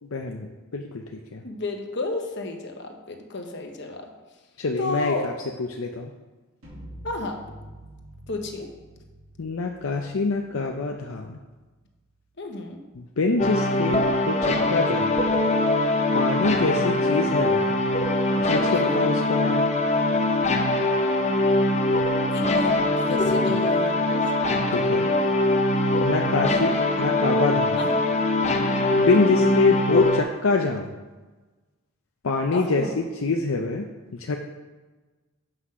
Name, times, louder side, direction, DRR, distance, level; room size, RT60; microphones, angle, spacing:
voice 1, 0.0-1.4 4.6-5.3 5.6-6.1 9.4-11.4 12.9-15.2 16.1-17.7 18.4-19.7 23.1-23.3 24.7-25.1 26.0-27.9 29.0-30.9 32.2-33.9 34.1-34.4, left 3 dB, 75° left, 2 dB, 0.6 m, -25 dB
voice 2, 1.4-4.1 4.8-5.3 7.0-7.4 8.3-8.7 12.4-12.8 18.7-19.1 22.3-24.3 27.7-28.0 29.1-29.3 32.5-32.9, left 2 dB, 55° left, 4 dB, 1.1 m, -32 dB
sound 1, 6.6-12.6, right 1 dB, 80° right, 3.1 m, -48 dB
sound 2, 13.4-30.2, left 2 dB, 30° left, 0.7 m, -22 dB
7.9 x 6.0 x 5.5 m, 1.3 s
head